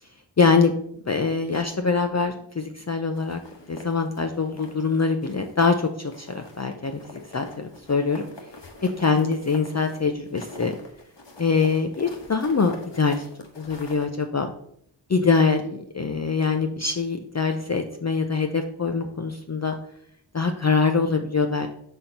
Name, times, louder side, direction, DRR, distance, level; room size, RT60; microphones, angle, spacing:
voice 1, 0.4-0.7 1.0-3.4 3.7-8.3 8.8-10.8 11.4-13.3 13.6-14.5 15.1-19.8 20.3-21.7, left 4 dB, 35° left, 5 dB, 0.5 m, -24 dB
sound 1, 3.2-4.9 5.2-5.8 6.1-14.1, left 2 dB, 65° left, 1.3 m, -44 dB
5.6 x 4.4 x 5.1 m, 0.68 s
wide cardioid pair, 55°, 46 cm